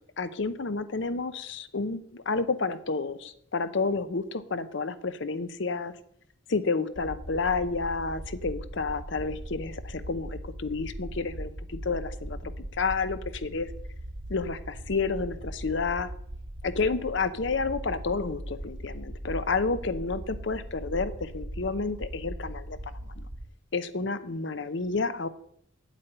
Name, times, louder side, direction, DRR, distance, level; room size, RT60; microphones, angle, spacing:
voice 1, 0.2-5.9 6.5-13.7 14.3-16.1 16.6-22.8 23.2-23.3 23.7-25.3, left 4 dB, 60° left, 13 dB, 0.7 m, -30 dB
sound 1, 6.9-23.5, right 1 dB, 55° right, 1.0 m, -39 dB
9.0 x 8.3 x 5.5 m, 0.69 s
head